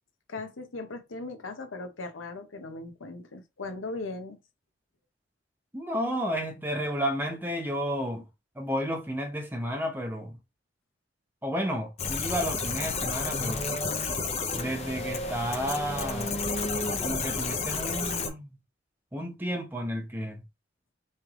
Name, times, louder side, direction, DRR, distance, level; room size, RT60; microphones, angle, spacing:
voice 1, 0.3-4.4, left 3 dB, 90° left, 0.8 m, -38 dB
voice 2, 5.7-8.2 8.6-10.4 11.4-13.7 14.5-16.5 17.0-18.6 19.1-20.4, equal, 10° right, 0.8 m, -32 dB
sound 1, 12.0-18.3, left 3 dB, 35° left, 0.6 m, -31 dB
3.3 x 3.2 x 3.6 m
head